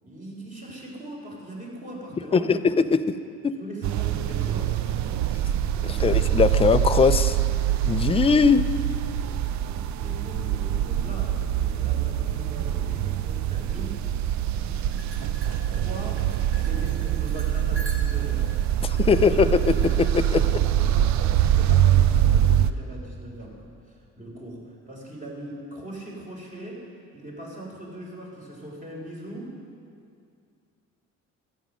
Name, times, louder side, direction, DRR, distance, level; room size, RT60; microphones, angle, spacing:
voice 1, 0.0-2.7 3.5-5.1 5.7-6.1 9.6-14.1 15.5-18.6 20.5-26.9 27.1-29.6, right 1 dB, 25° right, -2 dB, 3.7 m, -40 dB
voice 2, 2.3-3.2 3.4-3.6 5.3-5.4 5.8-7.4 7.8-8.7 18.8-20.5, left 5 dB, 20° left, 11 dB, 0.4 m, -21 dB
sound 1, 3.8-22.7, right 11 dB, 65° right, 0.5 m, -24 dB
sound 2, 14.9-18.4 19.0-19.9, right 1 dB, 45° right, 1.6 m, -44 dB
13.0 x 9.0 x 6.3 m, 2.4 s
cardioid pair, 90°, 30 cm